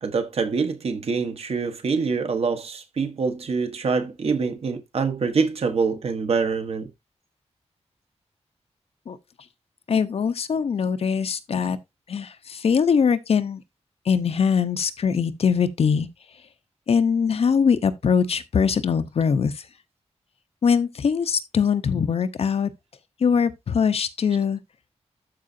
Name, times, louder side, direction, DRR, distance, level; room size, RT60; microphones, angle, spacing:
voice 1, 0.0-6.9, right 5 dB, 60° right, 1.4 m, -25 dB
voice 2, 9.9-11.8 12.1-13.6 14.1-16.1 16.9-19.5 20.6-22.7 23.2-24.6, left 6 dB, 60° left, 0.9 m, -22 dB
13.0 x 4.9 x 2.7 m
wide cardioid pair, 145°, 12 cm